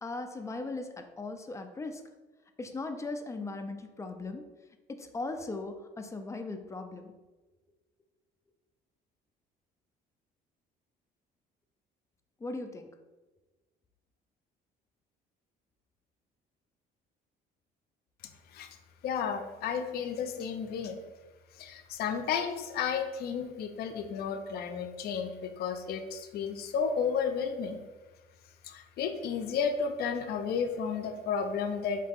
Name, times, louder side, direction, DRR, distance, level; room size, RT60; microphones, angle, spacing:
voice 1, 0.0-2.0 2.6-4.4 4.9-7.1 12.4-12.9, left 3 dB, 15° left, 6 dB, 0.4 m, -38 dB
voice 2, 19.0-21.0 21.6-27.8 28.6-32.1, left 6 dB, 70° left, 7 dB, 0.5 m, -32 dB
3.9 x 2.8 x 3.5 m, 1.2 s
cardioid pair, 110°, 17 cm